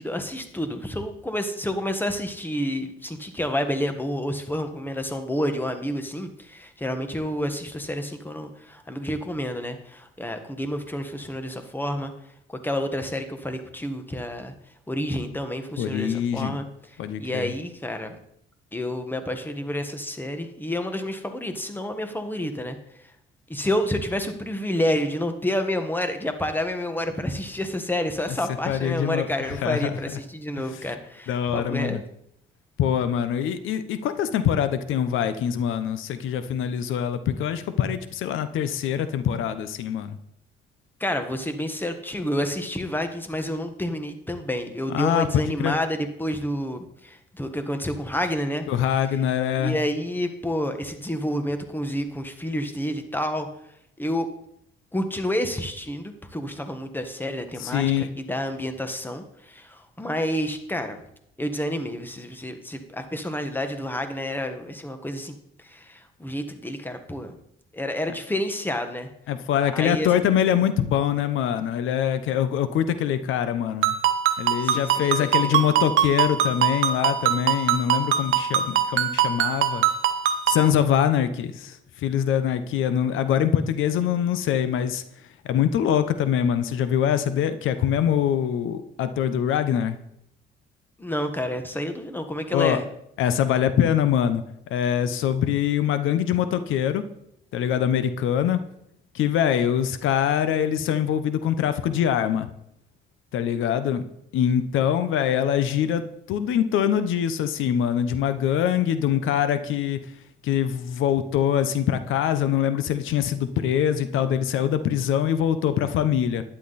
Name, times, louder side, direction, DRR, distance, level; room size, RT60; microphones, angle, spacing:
voice 1, 0.0-12.1 12.5-14.5 14.9-16.7 17.2-18.2 18.7-23.1 23.5-32.0 41.0-48.7 49.1-49.2 49.6-53.5 54.0-54.3 54.9-61.0 61.4-67.3 67.7-69.1 69.7-70.1 74.6-75.1 75.4-75.6 91.0-92.9, left 1 dB, 10° left, 7 dB, 1.5 m, -29 dB
voice 2, 15.8-16.6 17.0-17.5 28.7-29.3 29.6-29.9 31.3-32.0 32.8-40.2 44.9-45.8 48.7-49.8 57.6-58.1 69.3-73.9 74.4-79.8 80.5-85.0 85.4-90.0 92.5-92.8 93.2-94.4 94.7-97.0 97.5-98.6 99.1-102.5 103.3-104.0 104.3-106.0 106.3-110.0 110.4-116.4, left 9 dB, 85° left, 12 dB, 0.9 m, -24 dB
Ringtone, 73.8-80.7, right 9 dB, 85° right, 1.0 m, -23 dB
11.5 x 10.0 x 4.2 m, 0.75 s
cardioid pair, 90°, 20 cm